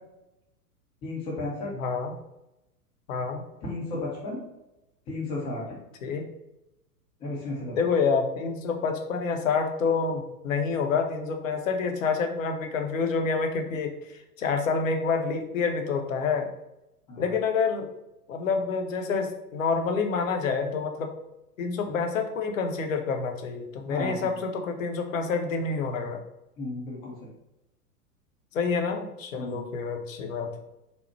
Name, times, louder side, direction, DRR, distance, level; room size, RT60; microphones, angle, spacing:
voice 1, 1.0-1.7 3.6-4.4 5.1-5.8 7.2-7.8 17.1-17.3 21.9-22.0 23.9-24.4 26.6-27.1 29.4-29.6, left 2 dB, 10° left, -5 dB, 0.5 m, -33 dB
voice 2, 1.8-2.1 3.1-3.4 6.0-6.3 7.8-16.5 17.2-17.9 18.3-21.1 21.6-26.2 28.5-30.6, left 5 dB, 55° left, 5 dB, 0.7 m, -28 dB
4.2 x 2.0 x 4.2 m, 0.91 s
figure-of-eight pair, 100°, 47 cm